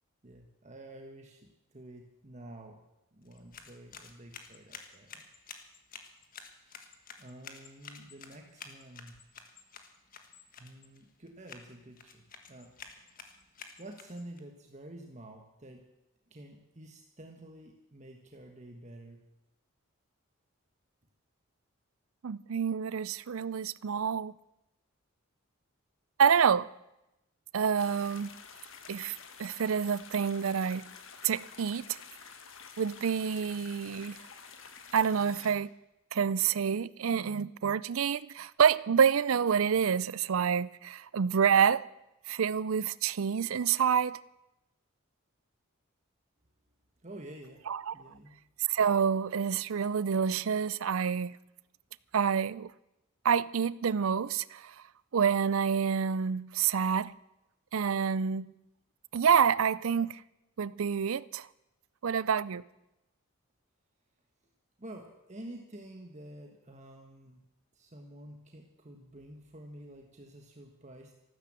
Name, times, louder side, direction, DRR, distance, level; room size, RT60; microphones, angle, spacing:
voice 1, 0.2-2.8 3.1-5.4 6.5-9.2 10.6-12.7 13.8-15.8 16.3-19.2 47.0-48.4 64.8-67.4 67.7-71.1, right 1 dB, 35° right, 1.3 m, -49 dB
sound 1, 3.2-14.4, left 5 dB, 40° left, 1.6 m, -51 dB
voice 2, 22.2-24.3 26.2-26.7 27.5-28.3 28.9-30.8 31.2-32.0 32.8-34.2 34.9-35.7 36.1-41.9 42.3-44.2 47.7-47.9 48.6-51.4 52.1-52.7 53.2-54.7 55.1-57.1 57.7-58.5 59.1-60.2 60.6-61.5 62.0-62.6, right 7 dB, 80° right, 0.5 m, -28 dB
sound 2, 27.8-35.5, left 6 dB, 70° left, 1.6 m, -50 dB
14.0 x 12.5 x 7.5 m
head